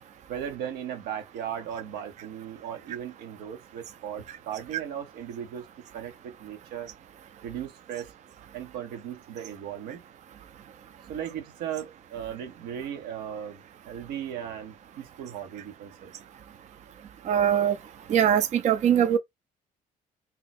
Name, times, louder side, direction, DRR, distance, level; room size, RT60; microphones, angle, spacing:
voice 1, 0.3-5.7 5.9-6.9 7.4-8.1 8.5-10.0 11.1-16.1, right 9 dB, 90° right, 0.9 m, -37 dB
voice 2, 17.3-17.7 18.1-19.2, right 9 dB, 50° right, 0.4 m, -21 dB
2.8 x 2.1 x 4.0 m
cardioid pair, 100°, 16 cm